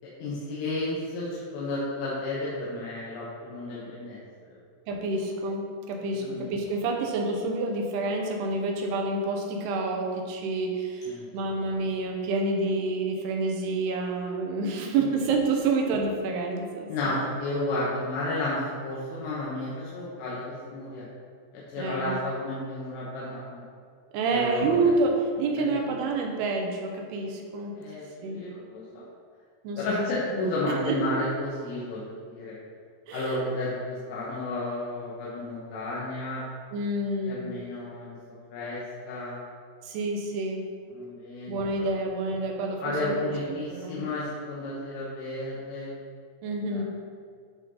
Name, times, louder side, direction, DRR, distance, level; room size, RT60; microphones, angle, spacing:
voice 1, 0.2-4.2 4.5-4.6 6.2-6.5 11.1-11.3 15.0-15.1 16.9-21.0 21.5-23.6 24.3-24.9 25.6-25.8 27.7-29.0 29.8-32.5 33.1-36.4 37.3-39.4 40.9-41.9 42.8-45.9 46.6-46.8, left 2 dB, 90° left, -7 dB, 3.3 m, -32 dB
voice 2, 4.9-16.9 21.8-22.2 24.1-27.8 28.2-28.4 29.6-30.1 30.3-31.0 33.1-33.5 36.7-37.5 39.8-40.7 41.5-43.1 43.7-44.0 46.4-46.8, right 3 dB, 80° right, 2 dB, 2.8 m, -28 dB
10.5 x 3.8 x 4.0 m, 2.2 s
omnidirectional pair, 4.8 m